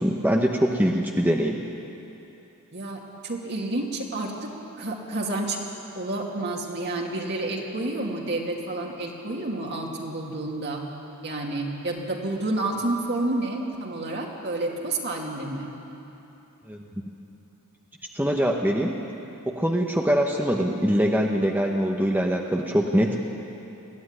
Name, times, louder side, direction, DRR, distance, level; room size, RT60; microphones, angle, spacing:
voice 1, 0.0-1.6 16.7-16.8 18.1-19.0 19.5-23.2, equal, 10° right, 1 dB, 1.1 m, -23 dB
voice 2, 2.7-4.5 4.8-5.6 5.9-10.8 11.2-15.7, right 2 dB, 50° right, 0 dB, 2.8 m, -29 dB
22.0 x 15.5 x 9.8 m, 2.9 s
head